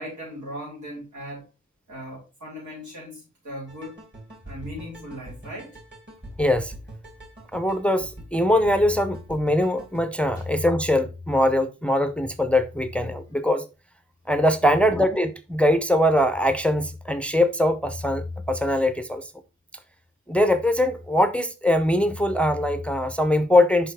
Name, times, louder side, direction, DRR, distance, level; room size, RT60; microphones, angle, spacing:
voice 1, 0.0-1.4 1.9-4.0 4.4-5.8 10.3-10.4 14.6-14.9, equal, 90° right, 4.0 m, -38 dB
sound 1, 3.7-10.1, right 1 dB, 35° right, 2.6 m, -44 dB
voice 2, 6.4-6.7 7.5-13.7 14.3-19.2 20.3-23.9, left 1 dB, 5° left, 0.5 m, -22 dB
5.7 x 5.4 x 3.2 m
wide cardioid pair, 95°, 29 cm